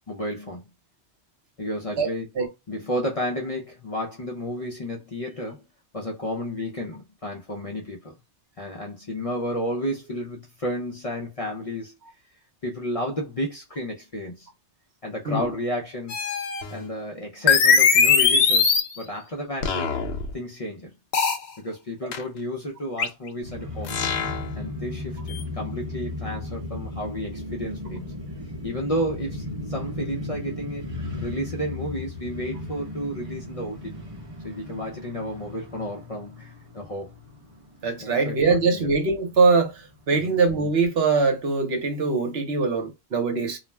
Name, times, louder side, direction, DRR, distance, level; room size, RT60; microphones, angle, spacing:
voice 1, 0.1-0.6 1.6-2.3 2.7-5.7 5.9-8.2 8.6-11.9 12.6-14.5 15.0-16.2 16.7-19.9 20.3-20.9 21.6-24.0 24.6-28.1 28.6-30.9 31.2-33.9 34.4-37.1 38.0-38.9 40.1-40.4, equal, 45° left, 0.5 m, -32 dB
sound 1, 16.1-16.8 17.5-19.0 19.6-20.3 21.1-21.4 22.1-22.2 23.0-23.1 23.9-24.5 25.3-25.4, left 6 dB, 75° left, 0.8 m, -20 dB
sound 2, 23.4-41.9, left 2 dB, 35° right, 0.7 m, -36 dB
voice 2, 37.8-39.7 40.1-43.6, right 4 dB, 65° right, 1.0 m, -22 dB
2.4 x 2.1 x 3.2 m
omnidirectional pair, 1.2 m